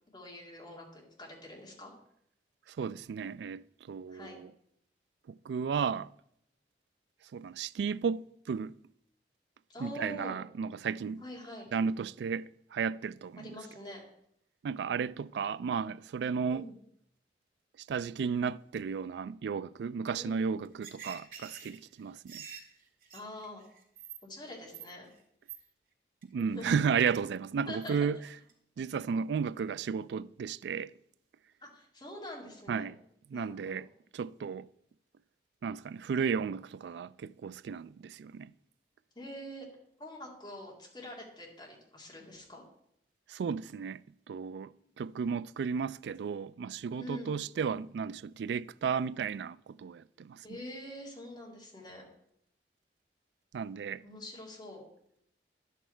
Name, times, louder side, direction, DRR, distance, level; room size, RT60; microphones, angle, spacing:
voice 1, 0.1-1.9 4.1-4.4 9.7-10.4 11.2-11.7 13.4-14.0 16.5-16.7 20.1-20.4 23.1-23.6 24.2-25.1 26.5-26.8 27.7-28.0 31.6-32.9 33.3-33.8 39.2-39.7 40.0-42.6 47.0-47.4 50.4-52.1 54.0-54.8, left 1 dB, 25° left, 2.3 m, -45 dB
voice 2, 2.7-4.5 5.3-6.1 7.3-8.8 9.8-11.2 11.7-13.5 14.6-16.7 17.9-22.4 26.3-28.2 28.8-30.9 32.7-33.0 33.3-33.9 34.1-34.7 35.6-38.5 43.3-44.0 44.3-50.4 53.5-54.0, right 6 dB, 75° right, 0.3 m, -34 dB
sound 1, 20.6-24.2 24.5-25.2 25.5-25.6 26.2-26.4 26.9-27.1 27.8-27.9 28.3-28.5, right 8 dB, 50° right, 2.1 m, -47 dB
11.0 x 8.4 x 4.4 m
head